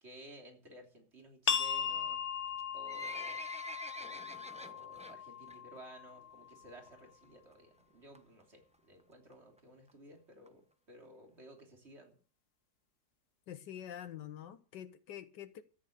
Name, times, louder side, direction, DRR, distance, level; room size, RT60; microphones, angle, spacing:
voice 1, 0.0-2.2 2.7-3.4 4.0-12.2, right 1 dB, 35° right, 3.5 m, -55 dB
sound 1, 1.5-6.8, left 7 dB, 45° left, 1.2 m, -38 dB
Livestock farm animals working animals, 2.5-5.1 5.5-5.8 6.1-6.2 6.9-7.0 7.2-7.3 7.5-7.6 8.1-8.4 9.0-9.1 9.3-9.4 9.6-9.7 9.9-10.0 10.5-10.6 11.0-11.1 11.6-11.7, equal, 5° right, 0.8 m, -46 dB
voice 2, 13.5-15.6, left 10 dB, 75° left, 1.4 m, -46 dB
13.5 x 10.5 x 6.6 m
omnidirectional pair, 1.9 m